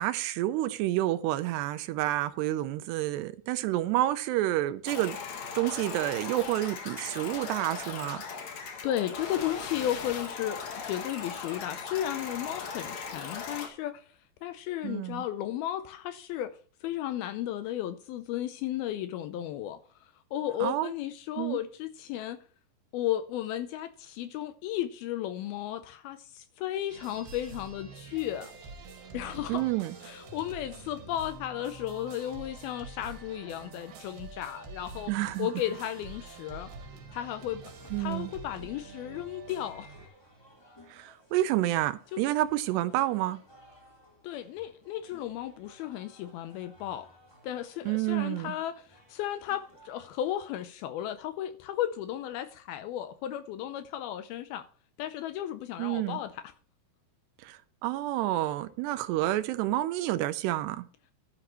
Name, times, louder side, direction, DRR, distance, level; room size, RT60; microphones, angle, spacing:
voice 1, 0.0-5.2 5.6-8.2 14.8-15.2 20.6-20.9 21.4-21.6 29.5-29.9 35.1-35.5 37.9-38.3 40.9-43.4 47.9-48.5 55.8-56.2 57.4-60.8, right 15 dB, 85° right, 2.8 m, -29 dB
sound 1, 4.9-13.7, left 5 dB, 55° left, 2.2 m, -38 dB
voice 2, 8.5-14.1 14.4-22.4 22.9-28.5 29.1-29.7 30.0-35.1 35.4-36.7 37.1-37.6 38.0-40.0 42.1-42.3 44.2-47.1 47.4-54.7 55.0-56.5, left 12 dB, 80° left, 2.3 m, -34 dB
sound 2, 26.9-40.1, right 4 dB, 65° right, 3.5 m, -46 dB
sound 3, 37.1-50.7, left 1 dB, 10° left, 2.1 m, -58 dB
12.0 x 10.0 x 3.1 m
omnidirectional pair, 4.8 m